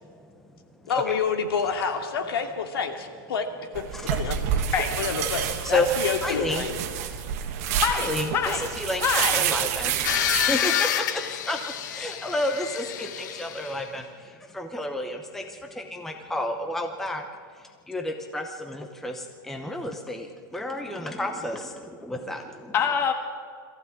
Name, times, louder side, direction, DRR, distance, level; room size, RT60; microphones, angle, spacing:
voice 1, 0.9-3.4 3.7-3.8 4.2-4.4 4.7-6.8, left 6 dB, 85° left, 4 dB, 2.7 m, -28 dB
sound 1, 3.7-10.5, right 9 dB, 40° right, 1.6 m, -28 dB
voice 2, 3.9-4.5 5.6-5.9 6.2-6.7 7.9-10.0 10.4-17.2 17.9-22.7, left 1 dB, 5° left, 4 dB, 0.8 m, -31 dB
voice 3, 7.8-8.7 9.0-9.4 22.7-23.1, left 7 dB, 20° left, 5 dB, 1.6 m, -25 dB
sound 2, 10.0-13.8, left 10 dB, 50° left, 1.2 m, -28 dB
22.5 x 15.0 x 8.8 m, 2.1 s
supercardioid pair, 175°, 12 cm